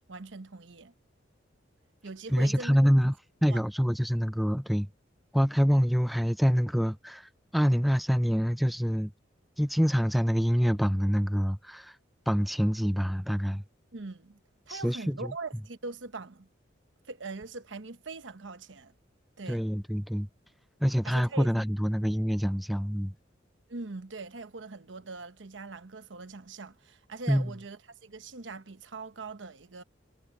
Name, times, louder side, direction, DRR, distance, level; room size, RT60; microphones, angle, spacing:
voice 1, 0.1-0.9 2.0-2.8 3.5-3.6 13.9-14.4 14.7-16.5 17.1-18.9 19.4-19.6 21.0-21.5 23.7-29.8, right 3 dB, 75° right, 1.1 m, -41 dB
voice 2, 2.3-3.1 3.4-4.9 5.3-9.1 9.6-12.0 12.3-13.6 14.7-15.3 19.5-20.3 20.8-23.1 27.3-27.5, equal, ahead, 0.3 m, -26 dB
head